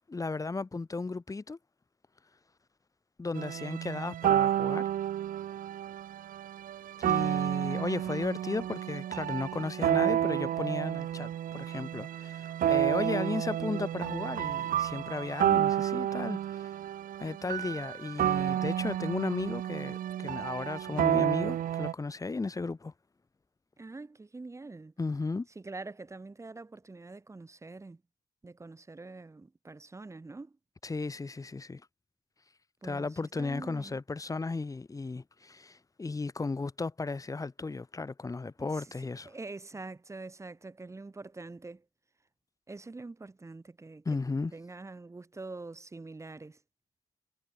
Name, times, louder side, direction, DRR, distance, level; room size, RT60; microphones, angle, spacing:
voice 1, 0.1-1.6 3.2-4.9 7.0-16.7 17.2-22.9 25.0-25.5 30.8-31.8 32.8-39.3 44.0-44.5, left 3 dB, 20° left, 6.8 m, -35 dB
sound 1, 3.3-21.9, right 11 dB, 55° right, 1.2 m, -30 dB
voice 2, 23.8-24.9 25.5-28.0 28.4-30.6 32.8-33.1 33.4-34.0 38.6-41.8 42.7-44.2 44.5-46.6, right 3 dB, 15° right, 6.2 m, -45 dB
cardioid pair, 110°, 17 cm